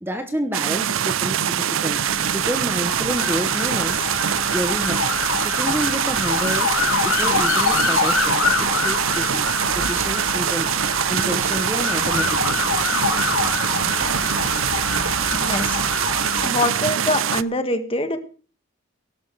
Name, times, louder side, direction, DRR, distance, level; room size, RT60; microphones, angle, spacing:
voice 1, 0.0-4.1 4.5-5.0 5.4-6.7 7.0-10.7 11.1-12.6, equal, 10° right, 8 dB, 0.9 m, -29 dB
sound 1, 0.5-17.4, right 9 dB, 75° right, 0.6 m, -23 dB
sound 2, 1.9-16.5, left 5 dB, 80° left, 2.5 m, -26 dB
voice 2, 15.3-15.8 16.4-18.2, left 1 dB, 25° left, 8 dB, 1.6 m, -24 dB
18.0 x 11.5 x 4.7 m, 0.41 s
head